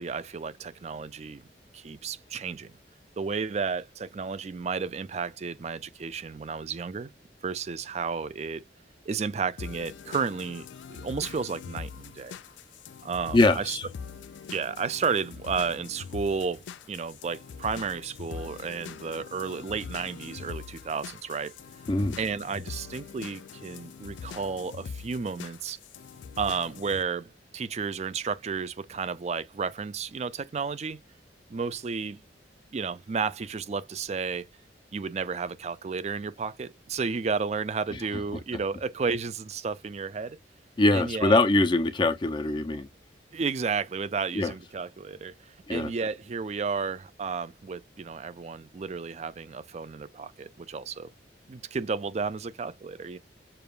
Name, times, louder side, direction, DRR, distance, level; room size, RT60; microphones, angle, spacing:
voice 1, 0.0-1.4 1.7-2.7 3.2-7.1 7.4-8.6 9.1-12.4 13.0-13.8 14.5-21.5 22.2-25.8 26.4-31.0 31.5-32.2 32.7-34.5 34.9-40.4 40.9-41.4 43.3-51.1 51.5-53.2, right 5 dB, 35° right, 0.4 m, -32 dB
sound 1, 9.6-27.0, left 6 dB, 90° left, 0.4 m, -43 dB
voice 2, 13.3-13.8 21.9-22.2 37.9-38.0 40.8-42.9 44.3-44.5 45.7-45.9, left 2 dB, 25° left, 0.4 m, -23 dB
6.7 x 2.3 x 2.3 m
head